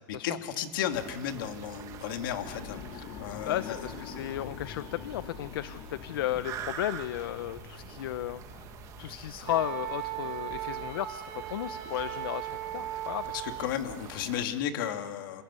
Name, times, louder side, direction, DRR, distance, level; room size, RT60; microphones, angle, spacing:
voice 1, 0.2-3.8 13.3-15.4, left 9 dB, 65° left, 6 dB, 2.4 m, -34 dB
sound 1, 0.9-14.5, right 9 dB, 25° right, 1.6 m, -46 dB
sound 2, 2.4-10.6, left 9 dB, 45° left, 1.1 m, -46 dB
voice 2, 3.4-8.6 9.0-13.3, left 13 dB, 80° left, 14 dB, 0.7 m, -34 dB
Wind instrument woodwind instrument, 9.5-13.7, right 12 dB, 65° right, 3.3 m, -37 dB
27.0 x 17.0 x 8.3 m, 1.5 s
supercardioid pair, 165°, 12 cm